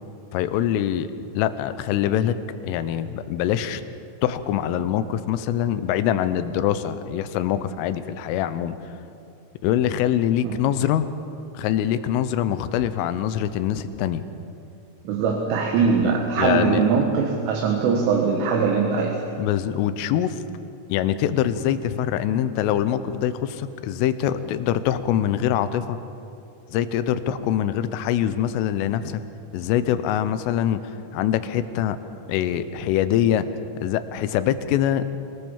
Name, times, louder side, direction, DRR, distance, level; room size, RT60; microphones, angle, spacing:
voice 1, 0.3-1.1 1.4-2.4 2.6-3.8 4.2-8.8 9.6-11.1 11.6-14.2 16.0-16.8 19.4-20.4 20.9-26.0 26.7-29.2 29.5-30.8 31.1-32.0 32.3-33.5 33.8-35.2, left 10 dB, 85° left, 12 dB, 3.4 m, -24 dB
voice 2, 15.1-19.2 27.3-27.4, right 5 dB, 80° right, 1 dB, 4.1 m, -21 dB
25.5 x 18.5 x 7.2 m, 2.6 s
omnidirectional pair, 5.7 m